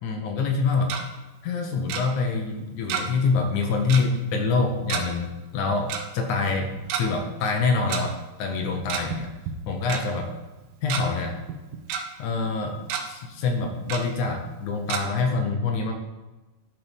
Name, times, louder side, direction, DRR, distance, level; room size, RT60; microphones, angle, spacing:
voice 1, 0.0-1.0 1.4-9.3 9.7-10.3 10.8-11.4 12.2-12.8 13.1-15.9, left 4 dB, 75° left, 3 dB, 1.9 m, -26 dB
Tick-tock, 0.6-1.0 1.9-2.0 2.9-3.2 3.5-3.6 3.9-4.1 4.9-5.0 5.9-6.0 6.8-7.0 7.9-8.0 8.7-9.2 9.5-9.6 9.9-10.0 10.6-11.0 11.5-12.0 12.4-12.5 12.8-13.0 13.9-14.0 14.9-15.0, right 8 dB, 80° right, 2.7 m, -29 dB
12.0 x 4.2 x 5.3 m, 1.1 s
omnidirectional pair, 4.4 m